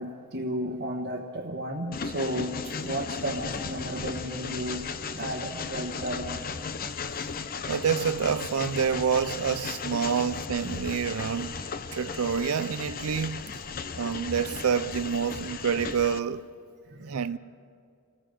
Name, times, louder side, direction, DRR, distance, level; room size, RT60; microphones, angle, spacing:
voice 1, 0.0-6.4 13.8-13.9 16.9-17.3, right 1 dB, 55° right, 1.3 m, -33 dB
Train, 1.9-16.2, left 5 dB, 40° left, 0.7 m, -36 dB
voice 2, 7.7-11.6 11.9-13.5 14.0-16.5 17.0-17.4, right 7 dB, 85° right, 0.5 m, -28 dB
27.5 x 18.5 x 5.2 m
head